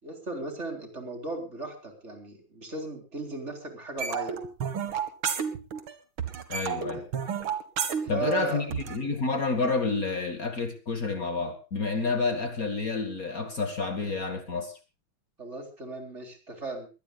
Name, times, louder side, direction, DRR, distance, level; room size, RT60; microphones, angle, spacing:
voice 1, 0.0-4.4 6.9-7.1 8.0-8.7 15.4-16.9, right 3 dB, 35° right, 4 dB, 4.1 m, -36 dB
sound 1, 4.0-5.9 6.2-9.0, right 7 dB, 80° right, 2.6 m, -31 dB
voice 2, 6.5-7.0 8.1-14.8, left 4 dB, 45° left, 7 dB, 2.2 m, -29 dB
23.0 x 17.5 x 2.5 m, 0.31 s
omnidirectional pair, 2.2 m